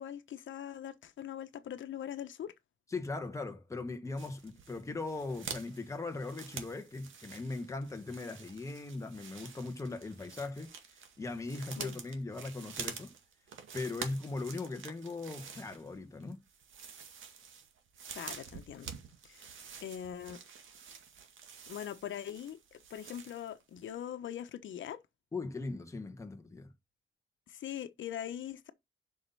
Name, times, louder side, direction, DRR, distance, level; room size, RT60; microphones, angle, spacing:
voice 1, 0.0-2.5 11.8-12.0 18.1-19.0 19.2-19.5 19.8-20.4 21.7-25.0 27.5-28.7, left 10 dB, 75° left, 1.1 m, -42 dB
voice 2, 2.9-10.7 11.2-13.1 13.7-16.4 25.3-26.7, left 3 dB, 15° left, 1.2 m, -39 dB
sound 1, 4.2-23.6 23.9-24.0, right 6 dB, 80° right, 2.1 m, -48 dB
7.8 x 5.7 x 5.5 m
wide cardioid pair, 180°, 20 cm